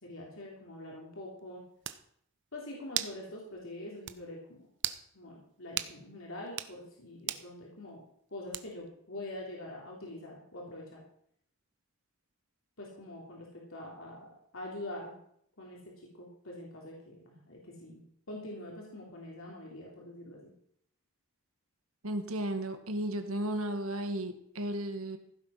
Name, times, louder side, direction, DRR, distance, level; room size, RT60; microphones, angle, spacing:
voice 1, 0.0-1.6 2.5-4.7 5.1-8.0 8.3-11.0 12.8-15.2 15.6-18.0 18.3-20.5, left 1 dB, 65° left, -2 dB, 3.6 m, -45 dB
sound 1, 1.4-1.5 1.8-2.0 3.0-3.2 3.6-3.7 4.1-4.2 4.8-5.0 5.8-6.0 6.5-6.7 7.3-7.5 8.5-8.9, right 12 dB, 55° right, 0.8 m, -35 dB
voice 2, 22.0-25.2, right 1 dB, 75° right, 7 dB, 1.7 m, -34 dB
15.5 x 8.6 x 5.9 m, 0.67 s
head